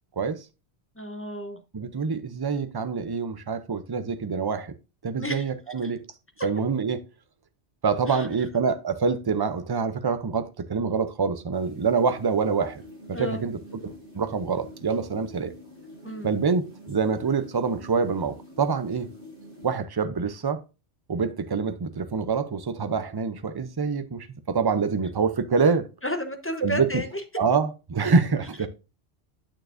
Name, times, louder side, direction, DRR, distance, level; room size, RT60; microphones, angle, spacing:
voice 1, 0.9-1.6 5.2-5.5 5.8-5.9 6.4-6.5 8.1-8.3 13.1-13.4 16.0-16.3 26.0-27.2, left 1 dB, 15° left, 0.7 m, -32 dB
voice 2, 1.7-4.7 5.0-6.0 6.4-7.0 7.8-12.8 13.1-15.5 16.2-19.1 19.6-20.6 21.1-25.9 26.6-26.9 27.4-28.7, right 5 dB, 35° right, 0.4 m, -26 dB
sound 1, 11.5-19.8, left 1 dB, 50° right, 2.4 m, -46 dB
9.0 x 6.7 x 2.5 m
omnidirectional pair, 1.2 m